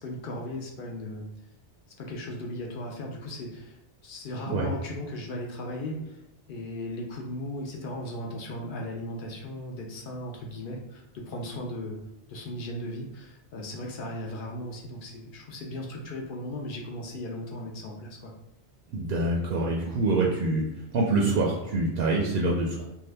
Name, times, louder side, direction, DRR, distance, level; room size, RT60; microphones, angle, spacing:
voice 1, 0.0-1.3 2.0-6.2 6.5-12.0 12.3-18.3, left 1 dB, 60° left, 0 dB, 0.6 m, -37 dB
voice 2, 18.9-20.6 20.9-22.8, right 2 dB, 65° right, -2 dB, 0.7 m, -25 dB
2.7 x 2.3 x 3.2 m, 0.89 s
omnidirectional pair, 1.2 m